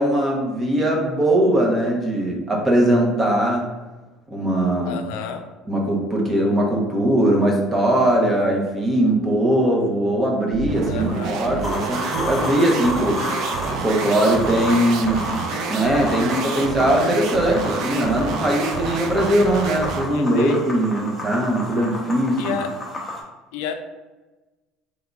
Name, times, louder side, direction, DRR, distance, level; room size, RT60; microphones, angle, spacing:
voice 1, 0.0-3.6 4.3-5.0 5.7-13.2 13.7-15.3 15.7-22.6, right 1 dB, 25° right, 0 dB, 0.9 m, -20 dB
voice 2, 4.9-5.5 10.9-11.5 20.1-20.6 22.4-22.8 23.5-23.7, left 8 dB, 85° left, 6 dB, 0.3 m, -30 dB
sound 1, 10.5-20.2, right 5 dB, 65° right, 0.4 m, -28 dB
sound 2, 11.6-23.2, left 1 dB, 10° left, 0.9 m, -31 dB
3.7 x 3.4 x 2.4 m, 1.2 s
supercardioid pair, 105°, 0 cm